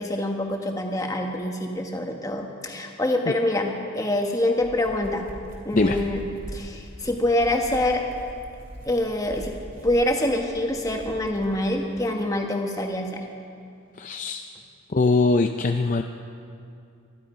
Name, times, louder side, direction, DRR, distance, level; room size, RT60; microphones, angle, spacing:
voice 1, 0.0-5.2 5.6-6.2 6.5-8.0 8.8-9.5 9.8-13.2, left 1 dB, 15° left, 2 dB, 1.3 m, -25 dB
sound 1, 4.4-11.6, equal, 40° right, 3.3 m, -41 dB
voice 2, 14.0-14.4 14.9-16.0, left 3 dB, 35° left, 5 dB, 0.5 m, -21 dB
24.5 x 11.5 x 5.1 m, 2.4 s
head